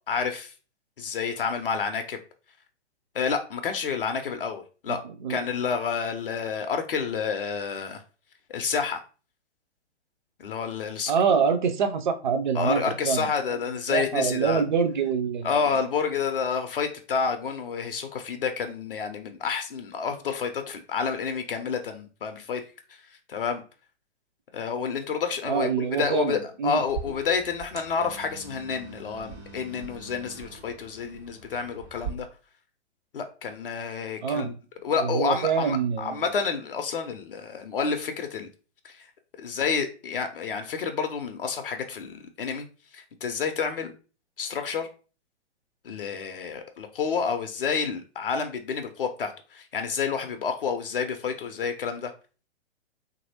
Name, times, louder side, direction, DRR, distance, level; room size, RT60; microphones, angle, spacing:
voice 1, 0.1-0.5 1.0-2.2 3.1-5.0 5.3-8.0 8.5-9.0 10.4-11.1 12.5-14.6 15.4-22.6 22.9-23.0 23.3-23.6 24.5-32.3 33.1-34.5 34.8-38.5 38.8-39.1 39.4-42.6 42.9-43.9 44.4-44.9 45.8-52.1, left 6 dB, 50° left, 6 dB, 0.4 m, -29 dB
voice 2, 11.1-13.3 13.9-15.5 25.4-26.8 34.2-34.5 35.0-36.3, right 6 dB, 45° right, 7 dB, 0.5 m, -25 dB
sound 1, 26.9-32.1, right 6 dB, 70° right, 1.0 m, -41 dB
2.8 x 2.6 x 2.7 m, 0.36 s
figure-of-eight pair, 115°, 35 cm